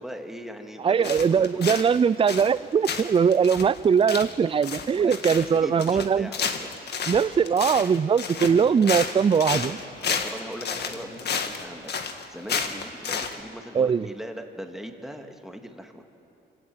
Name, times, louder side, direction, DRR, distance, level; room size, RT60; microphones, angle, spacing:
voice 1, 0.0-1.8 4.9-6.8 10.0-16.0, equal, ahead, 4 dB, 2.2 m, -40 dB
voice 2, 0.8-6.3 7.1-9.8 13.7-14.1, right 6 dB, 25° right, 19 dB, 0.5 m, -21 dB
sound 1, 1.0-2.0 2.3-2.6 2.8-13.4, left 6 dB, 55° left, 1.8 m, -31 dB
Human voice, 8.3-11.9 12.3-12.4 12.9-13.0, left 1 dB, 90° left, 6.1 m, -46 dB
26.0 x 18.0 x 7.9 m, 2.6 s
cardioid pair, 90°, 20 cm